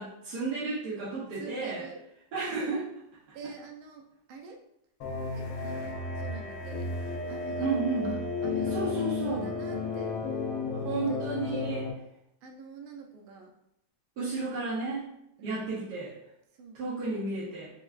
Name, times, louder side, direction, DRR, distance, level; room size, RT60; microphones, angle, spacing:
voice 1, 0.0-1.8 2.3-2.8 3.4-3.5 7.6-8.2 8.7-9.4 10.7-11.9 14.2-15.1 15.4-16.1 16.7-17.7, right 3 dB, 60° right, -9 dB, 1.3 m, -32 dB
voice 2, 1.3-2.1 2.4-2.7 3.3-4.6 5.3-6.9 7.3-7.7 8.0-10.5 10.9-11.7 12.4-13.5 15.4-15.7 16.5-16.8, right 5 dB, 80° right, 2 dB, 1.5 m, -46 dB
sound 1, 5.0-11.9, left 3 dB, 90° left, 1.6 m, -33 dB
5.6 x 2.3 x 2.3 m, 0.78 s
omnidirectional pair, 2.3 m